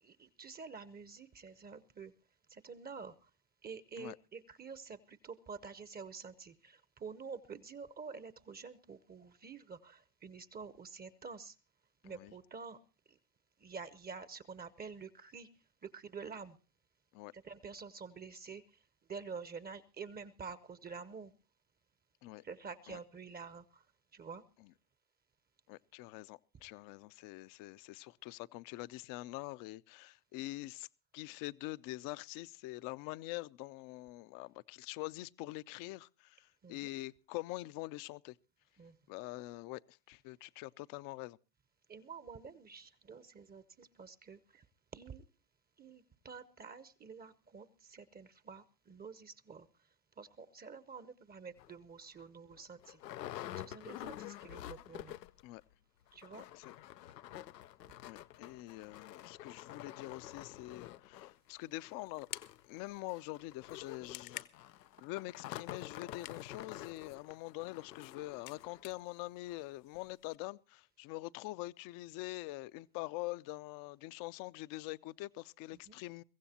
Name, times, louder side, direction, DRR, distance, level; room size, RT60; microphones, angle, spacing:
voice 1, 0.0-2.1 2.5-3.3 3.6-11.6 12.0-12.8 13.1-13.2 13.6-15.5 15.8-16.6 17.3-18.8 19.1-21.3 22.4-23.9 24.1-24.4 36.6-36.9 38.8-39.0 41.9-44.6 44.9-45.2 45.8-49.7 50.2-53.0 53.6-55.1 56.1-56.4 75.9-76.0, right 5 dB, 20° right, 0.8 m, -48 dB
voice 2, 25.7-30.9 31.1-38.3 39.1-41.4 55.4-55.6 56.3-56.7 58.0-62.3 62.7-64.5 65.0-76.2, left 19 dB, 45° left, 0.6 m, -45 dB
sound 1, 51.6-51.7 52.2-52.3 52.5-55.5 55.7-55.8 56.1-68.9 69.5-69.6 70.0-70.1, left 13 dB, 90° left, 0.7 m, -48 dB
sound 2, 61.1-70.4, left 18 dB, 65° left, 1.1 m, -54 dB
23.0 x 15.5 x 2.8 m
hypercardioid pair, 95°, 48 cm